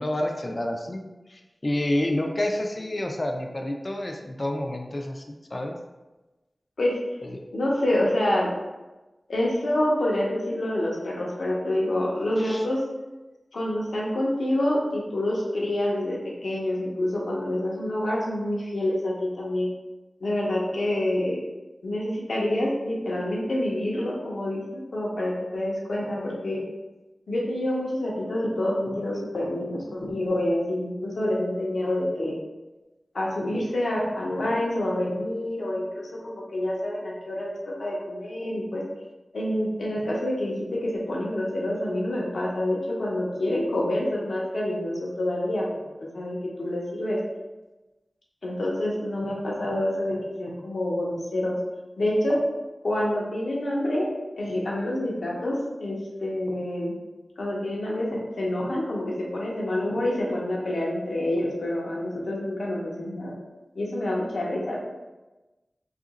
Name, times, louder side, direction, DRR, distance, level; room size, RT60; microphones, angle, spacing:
voice 1, 0.0-5.7 7.2-7.4 12.4-12.6, left 1 dB, 35° left, 2 dB, 0.3 m, -29 dB
voice 2, 7.5-8.5 9.3-12.8 13.5-19.7 20.2-21.4 21.8-26.6 27.3-32.3 33.1-38.8 39.3-45.6 46.1-47.2 48.4-51.6 52.0-52.4 52.8-54.1 54.4-56.9 57.4-63.3 63.8-64.8, left 1 dB, 85° left, -4 dB, 0.7 m, -27 dB
2.8 x 2.5 x 3.9 m, 1.1 s
wide cardioid pair, 90°, 0 cm